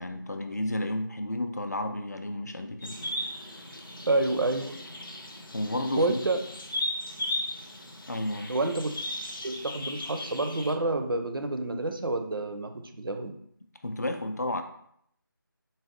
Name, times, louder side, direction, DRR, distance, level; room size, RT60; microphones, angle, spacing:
voice 1, 0.0-3.0 5.5-6.2 8.1-8.5 13.8-14.6, left 1 dB, 50° left, 6 dB, 0.4 m, -32 dB
sound 1, 2.8-10.7, left 1 dB, 70° left, 0.7 m, -37 dB
voice 2, 4.1-4.8 6.0-6.4 8.5-8.9 9.4-13.4, right 2 dB, 75° right, 7 dB, 0.5 m, -28 dB
4.0 x 2.1 x 3.7 m, 0.68 s
figure-of-eight pair, 175°, 12 cm